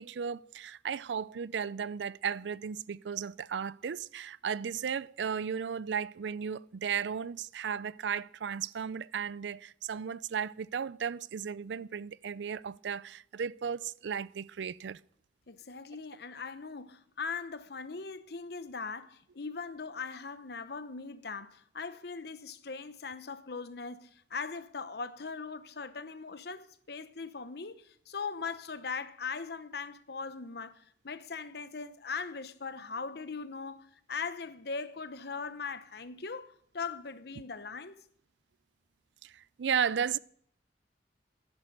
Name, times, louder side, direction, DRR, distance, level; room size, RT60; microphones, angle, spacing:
voice 1, 0.0-15.0 39.2-40.2, right 7 dB, 80° right, 0.4 m, -35 dB
voice 2, 15.5-38.0, left 5 dB, 60° left, 0.9 m, -40 dB
12.5 x 10.5 x 6.7 m
head